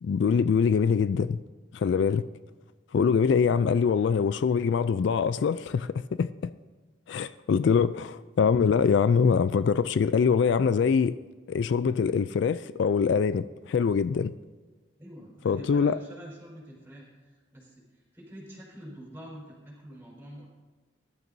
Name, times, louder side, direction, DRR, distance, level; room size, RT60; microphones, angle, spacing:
voice 1, 0.0-1.4 1.7-2.2 2.9-5.9 6.2-6.3 7.1-11.1 11.5-14.3 15.5-16.0, left 6 dB, 65° left, 14 dB, 0.3 m, -24 dB
voice 2, 15.0-20.5, equal, 10° right, -4 dB, 4.4 m, -46 dB
20.5 x 12.0 x 2.7 m, 1.4 s
head